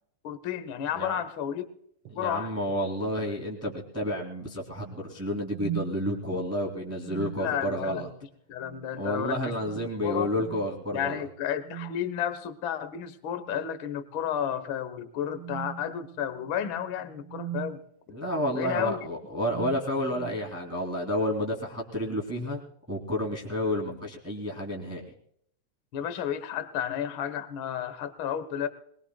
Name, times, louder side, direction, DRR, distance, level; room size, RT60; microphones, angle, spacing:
voice 1, 0.2-1.7 2.2-2.5 7.3-8.0 8.5-9.5 10.0-10.3 10.9-17.8 18.5-19.0 25.9-28.7, left 9 dB, 60° left, 12 dB, 1.3 m, -32 dB
voice 2, 2.1-8.1 9.0-11.2 18.1-22.6 22.9-25.1, equal, 5° right, -1 dB, 2.2 m, -30 dB
sound 1, 2.1-2.2 2.7-2.9 3.4-3.9 5.5-6.0 7.0-8.3 8.6-8.9 9.6-10.0 10.3-10.7 11.6-12.2 13.3-13.8 14.2-14.4 15.3-17.8 18.7-19.0 19.4-20.5, right 11 dB, 90° right, 1.2 m, -41 dB
22.0 x 21.0 x 2.2 m, 0.70 s
omnidirectional pair, 3.4 m